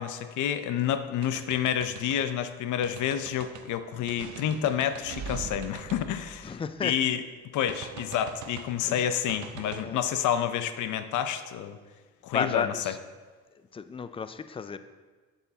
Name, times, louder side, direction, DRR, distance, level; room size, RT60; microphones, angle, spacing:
voice 1, 0.0-6.5 6.8-7.2 7.5-11.8 12.2-12.7, left 9 dB, 75° left, 11 dB, 0.6 m, -29 dB
sound 1, 1.2-2.2 2.8-3.7 4.1-7.0 7.7-8.8 9.3-9.8, right 7 dB, 75° right, 0.6 m, -42 dB
voice 2, 6.4-7.0 8.8-9.1 9.6-10.0 12.3-13.0 13.7-14.8, left 6 dB, 20° left, 12 dB, 0.3 m, -33 dB
8.1 x 8.0 x 2.8 m, 1.4 s
cardioid pair, 90°, 30 cm